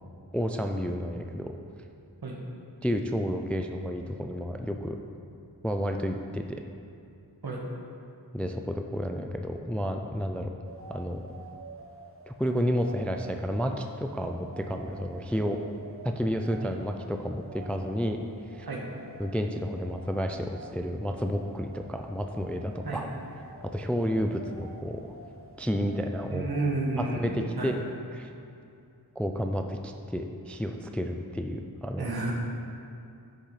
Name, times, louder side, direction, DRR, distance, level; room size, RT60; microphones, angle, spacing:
voice 1, 0.3-1.6 2.8-5.0 5.6-6.6 8.3-10.5 10.9-11.3 12.3-15.6 16.0-18.2 18.5-18.7 19.2-23.1 23.6-25.0 25.6-26.5 27.0-27.8 28.1-28.3 29.2-32.1, equal, 5° left, 5 dB, 0.3 m, -31 dB
sound 1, 10.6-27.9, right 2 dB, 35° right, 0.8 m, -48 dB
voice 2, 26.3-27.7 32.0-32.3, right 2 dB, 70° right, -2 dB, 1.4 m, -31 dB
9.8 x 6.6 x 3.2 m, 2.6 s
wide cardioid pair, 80°, 39 cm